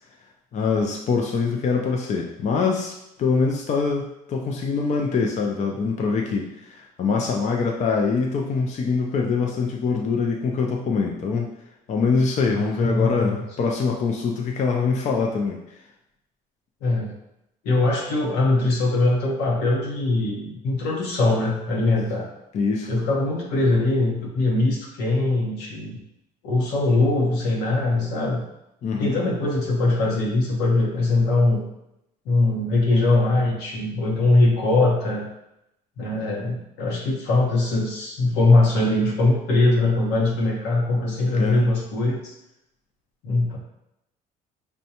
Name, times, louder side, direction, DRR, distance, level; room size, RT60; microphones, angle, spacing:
voice 1, 0.5-2.9 3.2-11.5 11.9-15.6 22.5-22.9 28.8-29.2 41.4-41.7, left 4 dB, 45° left, 0 dB, 0.5 m, -24 dB
voice 2, 12.5-13.4 16.8-17.1 17.6-22.3 22.9-26.0 26.4-28.4 28.9-31.6 32.2-35.3 36.0-42.3 43.2-43.6, left 2 dB, 85° left, -2 dB, 1.0 m, -21 dB
5.2 x 2.2 x 2.8 m, 0.86 s
cardioid pair, 110°, 17 cm